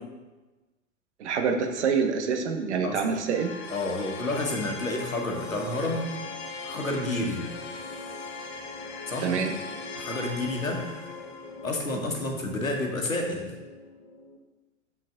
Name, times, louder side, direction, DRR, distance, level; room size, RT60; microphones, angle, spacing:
voice 1, 1.2-3.5 9.2-9.5, right 6 dB, 55° right, 5 dB, 1.0 m, -26 dB
sound 1, 3.3-14.4, left 3 dB, 30° left, 0.9 m, -40 dB
voice 2, 3.7-6.0 6.6-7.4 9.1-9.3 10.0-10.8 11.6-13.5, left 2 dB, 80° left, 2 dB, 1.4 m, -30 dB
6.8 x 6.2 x 3.7 m, 1.2 s
figure-of-eight pair, 95°, 40 cm